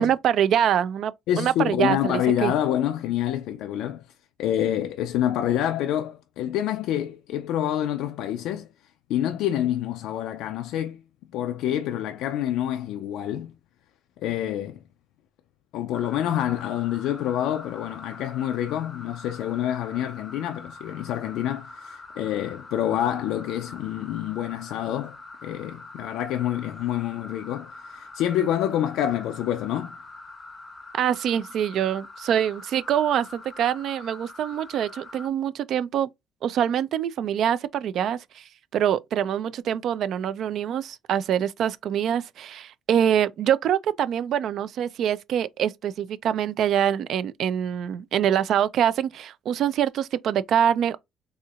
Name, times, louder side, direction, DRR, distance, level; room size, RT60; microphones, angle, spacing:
voice 1, 0.0-1.1 1.4-2.5 30.9-36.1 36.4-38.4 38.7-51.0, right 9 dB, 60° right, 0.3 m, -24 dB
voice 2, 1.3-4.0 4.4-8.7 9.1-11.0 11.3-13.5 14.2-14.8 15.7-25.2 25.4-30.0, left 11 dB, 85° left, 0.3 m, -27 dB
sound 1, 15.9-35.3, left 2 dB, 25° left, 0.6 m, -44 dB
4.2 x 2.7 x 2.4 m
cardioid pair, 135°, 0 cm